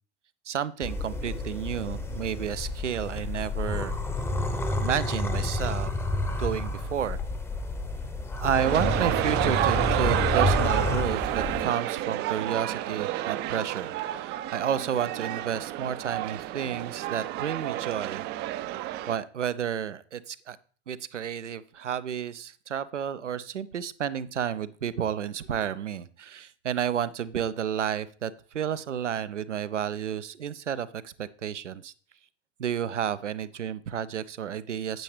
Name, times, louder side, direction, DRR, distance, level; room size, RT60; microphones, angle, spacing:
voice 1, 0.5-3.9 4.8-5.9 6.4-7.2 8.4-18.2 19.1-20.6 20.9-31.9 32.6-35.0, right 9 dB, 80° right, 17 dB, 0.6 m, -31 dB
sound 1, 0.8-11.7, left 2 dB, 5° left, 0.8 m, -30 dB
sound 2, 8.6-19.2, right 14 dB, 30° right, 0.5 m, -30 dB
9.0 x 8.5 x 3.2 m, 0.43 s
figure-of-eight pair, 90°, 35 cm